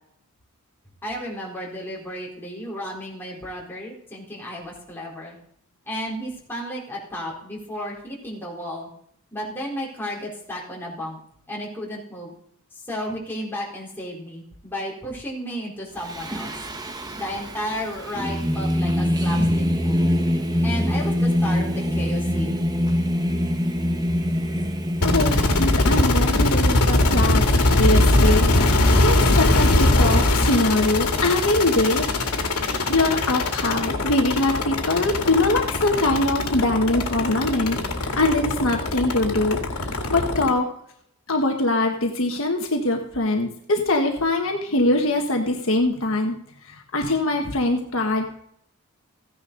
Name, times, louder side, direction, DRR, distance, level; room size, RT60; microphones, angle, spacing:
voice 1, 1.0-5.4 5.9-8.9 9.3-11.2 11.5-12.3 12.7-16.5 17.1-20.2 20.6-22.7, equal, 10° left, -5 dB, 4.0 m, -33 dB
Singing, 16.0-26.4, equal, 15° right, 1.0 m, -24 dB
sound 1, 25.0-40.5, left 2 dB, 85° left, 2.0 m, -21 dB
voice 2, 25.0-32.0 32.9-40.7 41.3-46.4 46.7-48.3, left 2 dB, 65° left, 2 dB, 1.5 m, -23 dB
15.5 x 10.0 x 4.0 m, 0.67 s
head